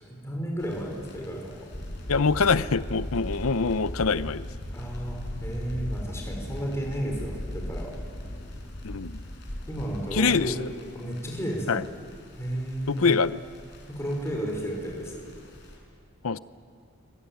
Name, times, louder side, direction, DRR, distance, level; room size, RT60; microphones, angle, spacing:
voice 1, 0.2-1.6 4.7-7.9 9.7-10.5 10.9-11.8 12.4-13.2 13.9-15.2, equal, 15° left, -1 dB, 5.1 m, -32 dB
sound 1, 0.6-15.8, left 1 dB, 50° left, 5.9 m, -51 dB
sound 2, 1.7-10.5, equal, 35° left, 1.8 m, -37 dB
voice 2, 2.1-4.5 8.8-9.2 10.1-10.7 11.7-11.8 12.9-13.4 16.2-16.4, left 4 dB, 75° left, 15 dB, 0.7 m, -24 dB
26.0 x 23.5 x 9.3 m, 2.2 s
head